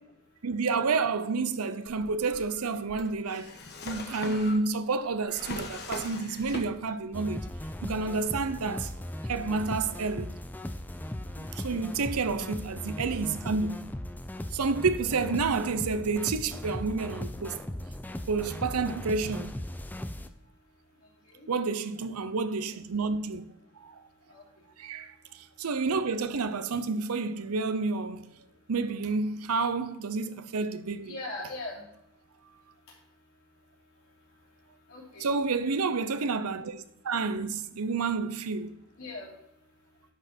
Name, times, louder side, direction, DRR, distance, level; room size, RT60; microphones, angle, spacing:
voice 1, 0.4-3.5 3.8-7.5 7.8-8.9 9.3-10.4 11.5-13.9 14.5-17.6 18.3-19.6 21.5-24.0 24.8-28.3 28.7-31.2 35.2-38.8, right 4 dB, 85° right, 0.7 m, -30 dB
Drawer open or close, 1.9-7.1 7.4-8.2, left 2 dB, 50° left, 1.3 m, -41 dB
sound 1, 7.1-20.3, left 1 dB, 10° left, 0.4 m, -38 dB
voice 2, 31.1-31.8 34.9-35.4 39.0-39.3, left 2 dB, 70° left, 3.3 m, -40 dB
10.5 x 6.2 x 4.4 m
head